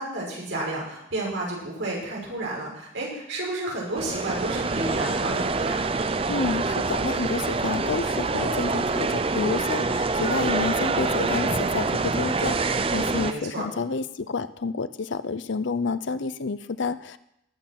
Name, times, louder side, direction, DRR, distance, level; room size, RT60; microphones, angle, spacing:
voice 1, 0.0-5.8 13.2-13.6, right 2 dB, 75° right, -3 dB, 5.6 m, -31 dB
sound 1, 4.0-13.3, right 3 dB, 30° right, 0.5 m, -26 dB
voice 2, 6.3-17.2, left 4 dB, 70° left, 14 dB, 0.6 m, -29 dB
18.5 x 6.9 x 5.9 m, 0.80 s
head